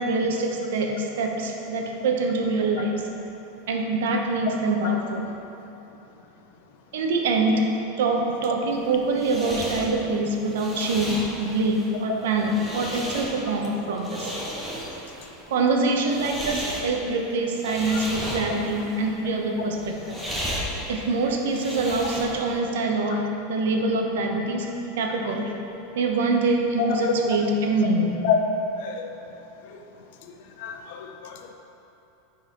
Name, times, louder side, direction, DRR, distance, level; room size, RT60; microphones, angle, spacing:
voice 1, 0.0-3.0 3.7-5.3 6.9-7.7 8.0-14.3 15.5-20.2 20.9-24.7 25.0-25.5 25.9-28.2, right 2 dB, 85° right, 1 dB, 0.9 m, -25 dB
sound 1, 8.7-22.6, equal, ahead, 0.9 m, -35 dB
voice 2, 28.8-29.1 29.6-29.8 30.6-31.5, left 7 dB, 55° left, 3 dB, 0.5 m, -27 dB
10.0 x 4.1 x 3.8 m, 3.0 s
supercardioid pair, 180°, 0 cm